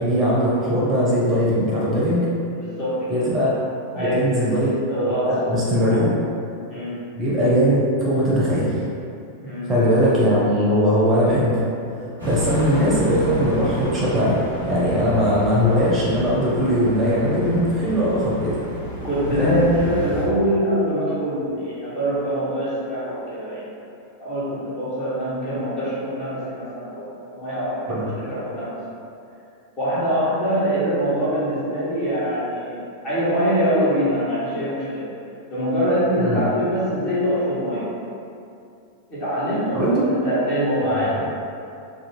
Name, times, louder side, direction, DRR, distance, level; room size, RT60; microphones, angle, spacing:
voice 1, 0.0-2.3 3.1-3.5 4.0-4.7 5.3-6.1 7.2-8.8 9.6-11.7 12.0-14.4 14.6-18.6 19.4-19.6 27.9-28.3 36.2-36.4 39.7-40.2 41.0-41.2, equal, 25° right, -6 dB, 0.6 m, -20 dB
voice 2, 2.5-3.3 3.9-4.2 4.9-6.0 6.7-7.0 9.4-9.7 19.0-23.7 24.2-28.7 29.8-35.1 35.5-37.9 39.1-41.2, equal, 35° left, -10 dB, 1.1 m, -24 dB
sound 1, 12.2-20.2, equal, 85° left, 0.9 m, -30 dB
2.6 x 2.2 x 2.8 m, 2.5 s
figure-of-eight pair, 90°, 0 cm